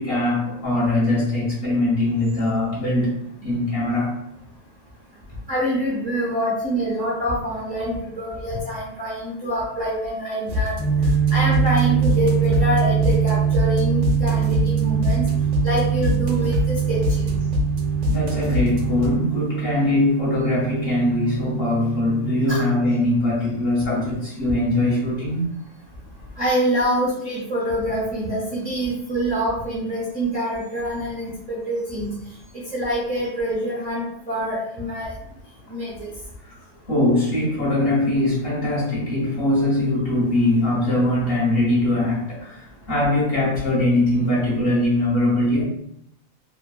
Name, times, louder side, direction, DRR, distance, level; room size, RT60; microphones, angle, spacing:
voice 1, 0.0-4.2 18.1-25.5 36.4-45.6, left 1 dB, 50° left, -6 dB, 0.9 m, -22 dB
voice 2, 5.5-10.8 11.3-15.2 15.6-17.3 22.5-22.6 26.4-32.1 32.7-35.1 35.7-36.1, equal, 45° right, -6 dB, 0.6 m, -25 dB
sound 1, 10.5-19.1, left 4 dB, 85° right, 1.1 m, -26 dB
sound 2, 10.8-23.0, right 10 dB, 5° left, 0.5 m, -23 dB
3.0 x 2.1 x 2.3 m, 0.76 s
omnidirectional pair, 1.4 m